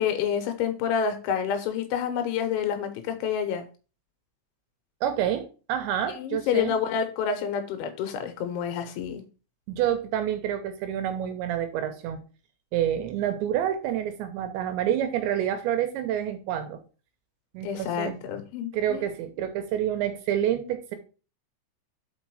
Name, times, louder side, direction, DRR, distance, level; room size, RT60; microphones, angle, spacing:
voice 1, 0.0-3.7 6.2-9.2 17.6-19.1, left 7 dB, 75° left, 7 dB, 3.3 m, -28 dB
voice 2, 5.0-6.7 9.7-12.2 12.7-16.8 17.5-18.1 18.7-21.0, right 10 dB, 75° right, 7 dB, 2.9 m, -28 dB
6.1 x 5.3 x 4.8 m, 0.34 s
omnidirectional pair, 5.7 m